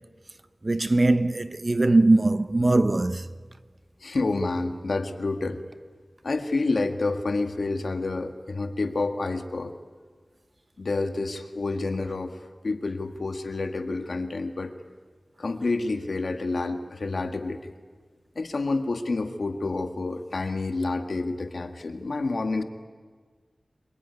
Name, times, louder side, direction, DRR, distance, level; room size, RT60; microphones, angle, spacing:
voice 1, 0.6-3.2, right 2 dB, 40° right, 0.9 m, -21 dB
voice 2, 4.0-5.6 6.2-9.7 10.8-12.4 12.6-14.7 15.4-17.7 18.4-22.6, left 3 dB, 80° left, 1.8 m, -28 dB
26.5 x 23.0 x 9.7 m
wide cardioid pair, 65°, 0 cm